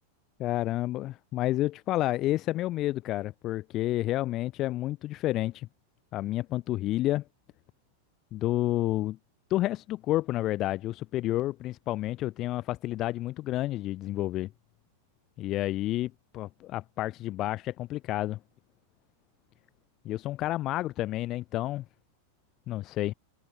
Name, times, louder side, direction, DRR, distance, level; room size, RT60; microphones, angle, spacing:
voice 1, 0.4-5.7 6.1-7.2 8.3-9.2 9.5-14.5 15.4-18.4 20.1-21.8 22.7-23.1, left 15 dB, 35° left, 0.3 m, -30 dB
open air
figure-of-eight pair, 90°, 0 cm